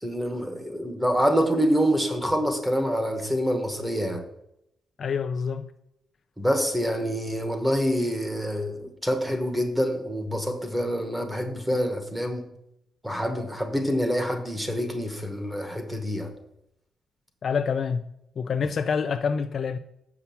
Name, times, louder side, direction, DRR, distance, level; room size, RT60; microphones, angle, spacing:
voice 1, 0.0-4.2 6.4-12.5 13.0-16.3, equal, 5° right, 1.0 m, -26 dB
voice 2, 5.0-5.7 17.4-18.1 18.4-19.8, left 6 dB, 40° left, 0.3 m, -27 dB
6.9 x 5.9 x 7.0 m
wide cardioid pair, 170°, 0 cm